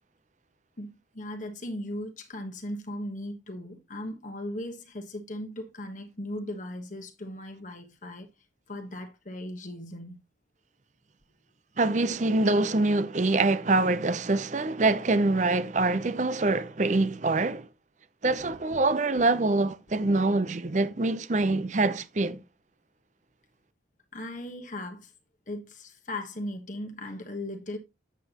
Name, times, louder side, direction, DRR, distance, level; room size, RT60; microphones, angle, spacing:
voice 1, 0.8-8.3 8.7-10.2 18.2-18.8 20.0-20.1 24.1-25.1 25.5-27.8, left 1 dB, 40° left, 1.3 m, -38 dB
voice 2, 11.8-17.7 18.2-22.4, right 2 dB, 40° right, 0.6 m, -25 dB
8.3 x 7.6 x 2.9 m
head